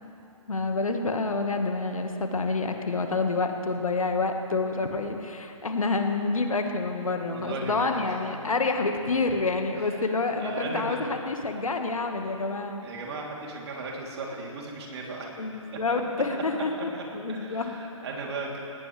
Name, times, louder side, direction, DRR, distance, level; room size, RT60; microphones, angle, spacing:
voice 1, 0.5-12.8 15.4-17.8, left 3 dB, 75° left, 5 dB, 1.6 m, -28 dB
voice 2, 7.3-8.2 9.8-10.0 10.4-11.0 12.2-12.5 12.8-15.4 16.3-16.4 16.9-17.0 17.3-18.6, right 3 dB, 50° right, -2 dB, 3.3 m, -36 dB
19.0 x 18.0 x 3.4 m, 2.7 s
figure-of-eight pair, 135°, 18 cm